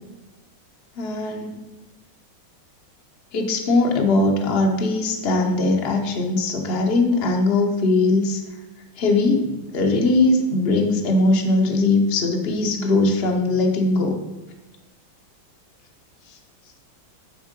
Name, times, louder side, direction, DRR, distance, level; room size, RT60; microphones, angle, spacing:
voice 1, 1.0-1.6 3.3-8.4 9.0-14.2, left 2 dB, 65° left, 2 dB, 0.6 m, -20 dB
9.1 x 3.6 x 5.1 m, 1.2 s
omnidirectional pair, 2.2 m